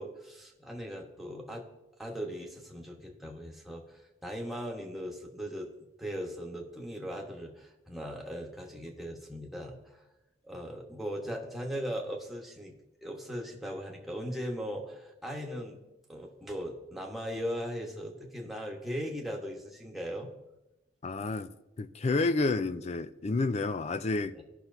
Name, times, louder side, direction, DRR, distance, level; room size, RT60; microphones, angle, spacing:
voice 1, 0.0-1.7 2.0-5.7 6.0-10.0 10.5-12.7 13.0-15.8 16.1-20.3 24.3-24.4, equal, ahead, 1.3 m, -38 dB
voice 2, 21.0-21.5 21.8-24.4, left 3 dB, 35° left, 0.4 m, -30 dB
17.5 x 5.8 x 2.7 m
head